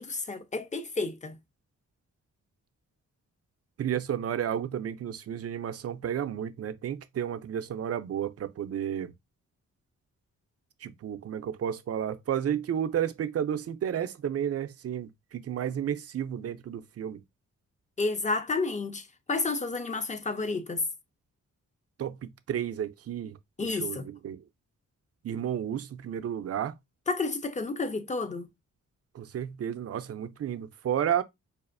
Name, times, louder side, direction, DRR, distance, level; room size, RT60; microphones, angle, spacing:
voice 1, 0.0-1.4 18.0-20.8 23.6-24.1 27.1-28.5, left 3 dB, 25° left, 0.5 m, -31 dB
voice 2, 3.8-9.1 10.8-17.2 22.0-24.4 25.2-26.8 29.1-31.2, right 9 dB, 50° right, 0.5 m, -32 dB
4.8 x 2.5 x 2.5 m
cardioid pair, 100°, 31 cm